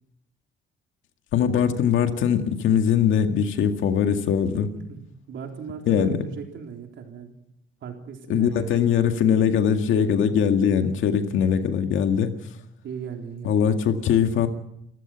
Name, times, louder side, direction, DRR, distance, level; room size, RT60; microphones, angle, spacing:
voice 1, 1.3-4.7 5.9-6.2 8.3-12.4 13.4-14.5, left 8 dB, 80° left, 6 dB, 2.0 m, -21 dB
voice 2, 4.6-5.0 5.3-7.3 7.8-8.7 10.2-10.4 12.8-13.6, right 7 dB, 70° right, 2 dB, 3.9 m, -37 dB
29.0 x 15.0 x 5.9 m, 0.78 s
cardioid pair, 90°, 20 cm